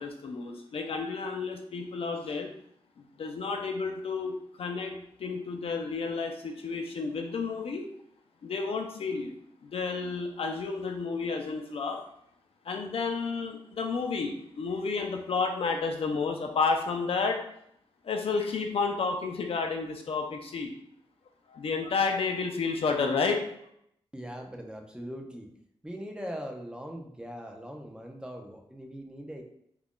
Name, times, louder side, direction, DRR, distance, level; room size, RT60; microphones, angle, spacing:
voice 1, 0.0-2.5 3.0-7.9 8.4-9.3 9.6-12.0 12.6-17.4 18.0-20.7 21.5-23.4, left 4 dB, 65° left, 4 dB, 0.4 m, -31 dB
voice 2, 24.1-25.5 25.8-29.4, equal, 10° right, 1 dB, 0.3 m, -40 dB
2.4 x 2.1 x 3.5 m, 0.73 s
wide cardioid pair, 135°, 11 cm